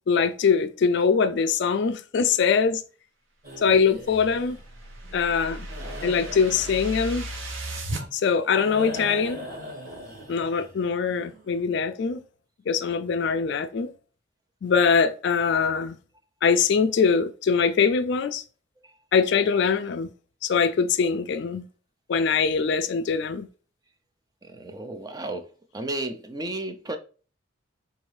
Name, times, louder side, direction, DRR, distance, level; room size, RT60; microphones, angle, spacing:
voice 1, 0.1-2.8 3.6-4.6 5.1-5.7 6.0-7.3 8.1-9.5 10.3-12.2 12.7-13.9 14.6-16.0 16.4-18.4 19.1-20.1 20.4-21.6 22.1-23.5, left 5 dB, 55° left, 0.3 m, -23 dB
sound 1, 3.4-11.6, equal, 45° right, 1.7 m, -41 dB
awesome sound, 4.0-8.0, right 1 dB, 70° right, 0.7 m, -36 dB
voice 2, 24.4-27.0, right 2 dB, 20° right, 0.4 m, -33 dB
3.8 x 2.6 x 3.1 m
head